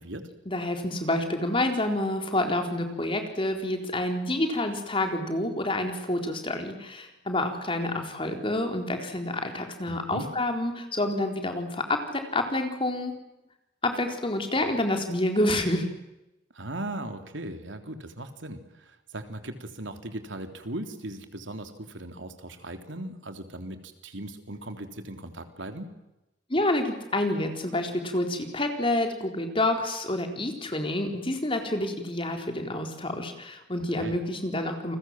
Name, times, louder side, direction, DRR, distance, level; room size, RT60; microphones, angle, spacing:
voice 1, 0.5-13.1 13.8-15.9 26.5-35.0, left 1 dB, 30° left, 5 dB, 4.1 m, -28 dB
voice 2, 9.9-10.3 16.5-26.0 33.9-34.2, right 1 dB, 85° right, 7 dB, 3.5 m, -38 dB
29.5 x 22.0 x 7.7 m, 0.93 s
head